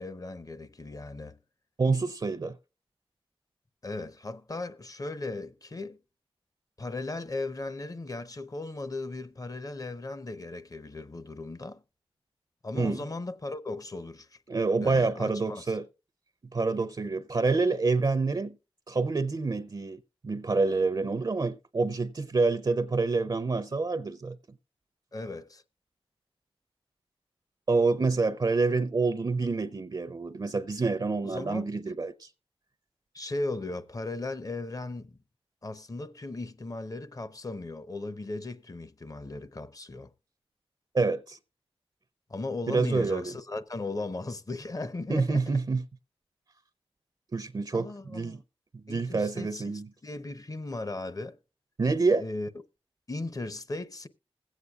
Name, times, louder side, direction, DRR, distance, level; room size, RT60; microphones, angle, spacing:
voice 1, 0.0-1.4 3.8-6.0 6.8-11.8 12.6-14.4 14.8-15.6 25.1-25.6 31.2-31.7 33.1-35.2 35.6-40.1 42.3-45.4 47.7-48.4 48.9-49.6 50.0-51.4 52.2-52.5 53.1-54.1, left 2 dB, 35° left, 0.7 m, -37 dB
voice 2, 1.8-2.6 12.7-13.0 14.5-15.9 16.5-18.6 18.9-24.4 27.7-32.3 40.9-41.4 42.7-43.3 45.1-45.8 47.3-48.4 48.7-49.9 51.8-52.2, right 3 dB, 45° right, 0.5 m, -27 dB
21.0 x 8.2 x 2.4 m
wide cardioid pair, 65°, 10 cm